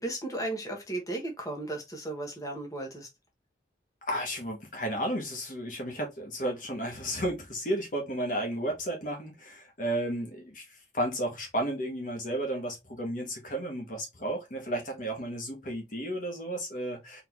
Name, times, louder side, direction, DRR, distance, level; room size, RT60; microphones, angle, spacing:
voice 1, 0.0-3.1, right 2 dB, 20° left, 1.3 m, -35 dB
voice 2, 4.0-17.2, right 1 dB, 45° left, 1.2 m, -33 dB
4.1 x 3.7 x 2.9 m
head